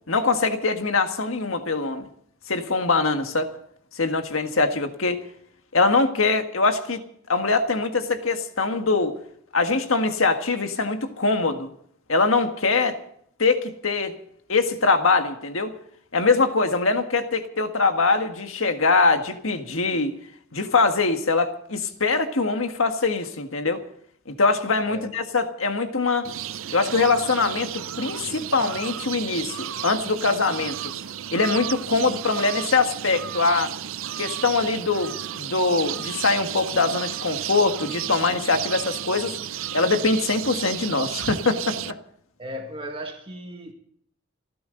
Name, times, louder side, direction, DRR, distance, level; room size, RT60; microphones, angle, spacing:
voice 1, 0.1-2.1 2.5-3.5 3.9-5.2 5.7-7.0 7.3-9.1 9.5-11.7 12.1-13.0 13.4-14.2 14.5-15.7 16.1-20.2 20.5-23.8 24.3-26.3 26.7-30.9 31.3-33.7 34.2-39.3 39.7-42.0, left 3 dB, 75° left, 1.7 m, -23 dB
sound 1, 26.2-41.9, right 11 dB, 70° right, 0.6 m, -33 dB
voice 2, 42.4-43.7, equal, 25° right, 2.0 m, -36 dB
29.0 x 11.5 x 3.9 m
head